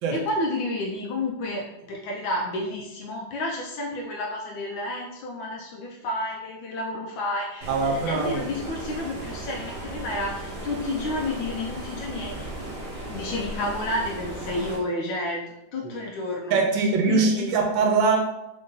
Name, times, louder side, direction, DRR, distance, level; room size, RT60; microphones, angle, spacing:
voice 1, 0.1-12.5 12.8-15.4 15.7-17.5, left 2 dB, 80° left, -1 dB, 1.3 m, -31 dB
Stream, 7.6-14.8, right 2 dB, 60° right, 1.6 m, -36 dB
voice 2, 7.7-8.4 15.8-15.9 16.5-18.2, right 4 dB, 80° right, 2 dB, 1.4 m, -22 dB
3.8 x 2.7 x 3.7 m, 0.90 s
omnidirectional pair, 2.1 m